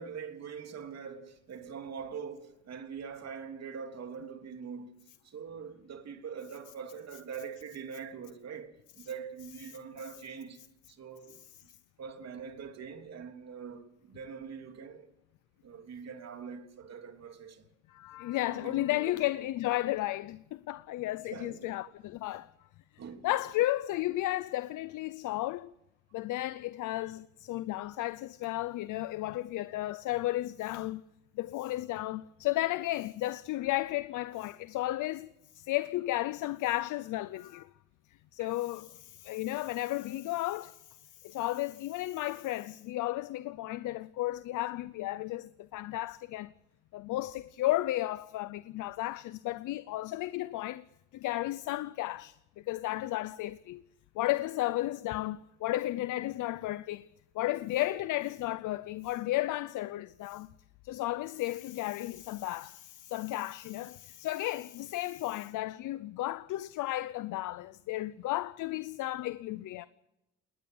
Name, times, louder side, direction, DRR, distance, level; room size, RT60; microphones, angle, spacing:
voice 1, 0.0-10.6 10.9-11.7 12.0-15.1 15.6-17.7 18.4-19.1 21.2-21.7 23.0-23.3 38.4-38.5, right 6 dB, 60° right, 3.2 m, -43 dB
voice 2, 17.9-22.5 23.2-25.7 26.1-31.0 31.4-35.3 35.5-37.7 38.3-46.5 46.9-50.8 51.1-52.4 52.6-53.8 54.2-57.1 57.3-60.5 60.8-69.9, left 16 dB, 85° left, 0.7 m, -33 dB
20.0 x 20.0 x 7.9 m
cardioid pair, 90°, 30 cm